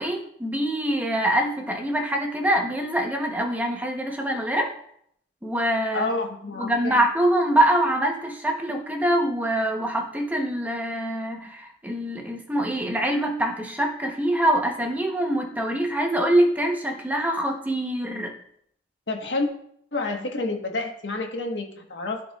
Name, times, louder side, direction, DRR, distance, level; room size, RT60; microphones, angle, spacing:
voice 1, 0.0-4.7 5.4-6.1 6.6-18.3, right 1 dB, 10° right, 2 dB, 0.9 m, -24 dB
voice 2, 5.9-7.0 19.1-19.5 19.9-22.2, left 3 dB, 85° left, 2 dB, 1.4 m, -29 dB
14.0 x 4.7 x 2.4 m, 0.69 s
head